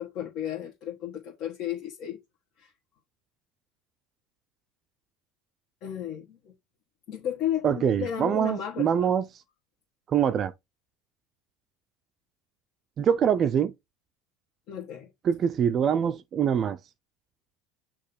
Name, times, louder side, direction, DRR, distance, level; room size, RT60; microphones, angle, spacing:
voice 1, 0.0-2.2 2.6-2.7 5.8-6.5 7.1-9.1 14.7-15.1, left 10 dB, 55° left, 1.5 m, -33 dB
voice 2, 7.6-9.2 10.1-10.5 13.0-13.7 15.2-16.8, right 8 dB, 35° right, 0.4 m, -24 dB
6.4 x 2.9 x 5.3 m
supercardioid pair, 130°, 0 cm